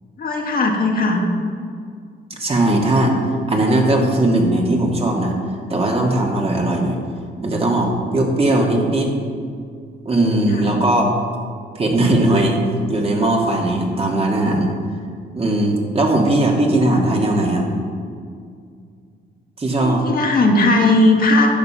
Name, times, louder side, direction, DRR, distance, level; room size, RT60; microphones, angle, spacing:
voice 1, 0.2-1.2 10.5-10.7 19.8-21.5, left 2 dB, 50° left, 1 dB, 1.5 m, -17 dB
voice 2, 2.4-3.2 3.5-5.4 5.7-7.0 7.4-9.1 10.1-11.1 11.8-12.6 12.9-14.7 15.4-17.7 19.6-20.0, right 1 dB, 30° right, 0 dB, 1.9 m, -18 dB
11.0 x 6.9 x 5.6 m, 2.2 s
cardioid pair, 90°, 20 cm